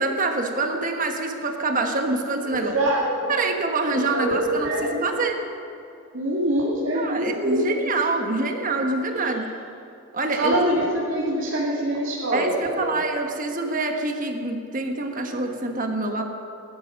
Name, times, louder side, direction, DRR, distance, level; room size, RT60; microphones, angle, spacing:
voice 1, 0.0-2.8 3.3-5.4 6.9-9.5 10.1-10.6 12.3-16.2, right 3 dB, 45° right, 4 dB, 1.2 m, -26 dB
voice 2, 2.4-3.3 4.1-5.2 6.1-7.9 9.1-9.3 10.4-12.9, right 1 dB, 75° right, -7 dB, 2.4 m, -25 dB
18.0 x 11.5 x 5.3 m, 2.7 s
head